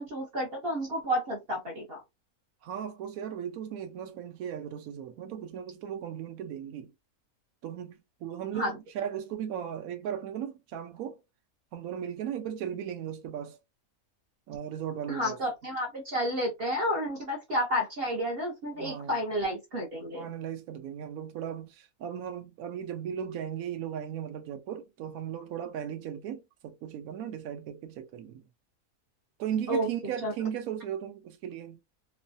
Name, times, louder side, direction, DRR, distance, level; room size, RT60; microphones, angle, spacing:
voice 1, 0.0-2.0 8.5-8.7 15.1-20.3 29.7-29.9 30.2-30.3, equal, 50° right, 0.8 m, -31 dB
voice 2, 2.6-6.9 7.6-11.2 11.7-13.6 14.5-15.4 18.8-19.2 20.1-28.4 29.4-31.8, right 9 dB, 75° right, 1.1 m, -37 dB
3.1 x 2.1 x 2.5 m
omnidirectional pair, 1.6 m